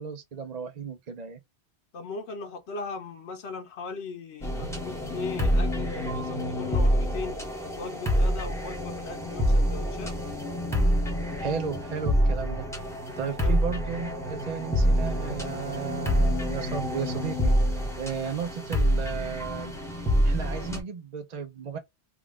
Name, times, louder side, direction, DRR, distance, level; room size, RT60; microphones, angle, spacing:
voice 1, 0.0-1.4 11.4-12.7 13.2-21.8, right 6 dB, 50° right, 0.6 m, -34 dB
voice 2, 1.9-7.4 7.8-10.1 13.4-13.6, left 4 dB, 85° left, 1.1 m, -38 dB
sound 1, 4.4-20.8, equal, 5° left, 1.1 m, -27 dB
3.6 x 2.4 x 3.6 m
omnidirectional pair, 1.1 m